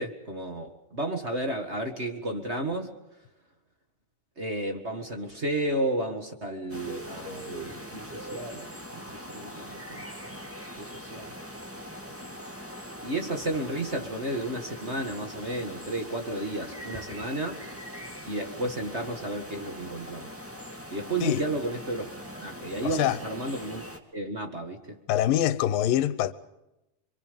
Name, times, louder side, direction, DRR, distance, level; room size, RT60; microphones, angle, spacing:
voice 1, 0.0-2.9 4.4-8.7 8.9-10.4 10.8-11.3 13.0-17.6 18.3-20.3 20.9-22.1 22.4-23.8 24.1-25.0, right 1 dB, 30° right, 1.2 m, -32 dB
sound 1, 6.7-24.0, equal, 5° right, 1.3 m, -42 dB
voice 2, 22.8-23.2 25.1-26.3, left 12 dB, 80° left, 2.6 m, -24 dB
27.5 x 24.5 x 5.3 m
omnidirectional pair, 4.0 m